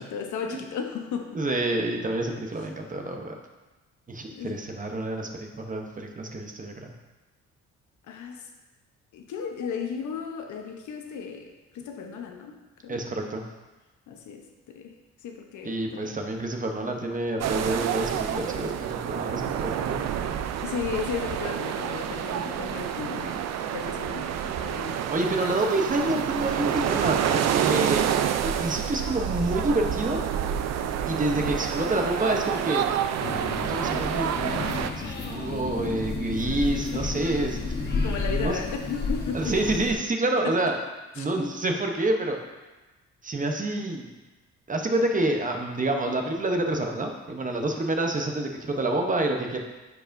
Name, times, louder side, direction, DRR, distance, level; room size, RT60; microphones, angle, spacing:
voice 1, 0.0-1.4 2.3-2.4 4.3-4.6 8.1-8.4 9.1-13.0 14.1-14.9 15.2-16.2 20.6-25.0 36.9-37.1 38.0-39.6 40.4-40.5 41.2-41.3, left 6 dB, 75° left, 4 dB, 0.9 m, -35 dB
voice 2, 1.3-3.4 4.1-6.9 12.9-13.4 15.6-20.0 25.1-28.1 28.4-30.3 31.1-32.8 33.7-34.3 35.0-37.9 38.3-38.6 39.3-40.7 41.2-42.4 43.2-44.1 44.7-49.6, right 2 dB, 25° right, 3 dB, 0.8 m, -28 dB
sound 1, 17.4-34.9, right 9 dB, 60° right, 0.5 m, -28 dB
sound 2, 33.2-39.9, left 3 dB, 35° left, 1.1 m, -31 dB
9.7 x 4.8 x 2.6 m, 1.1 s
cardioid pair, 90°, 30 cm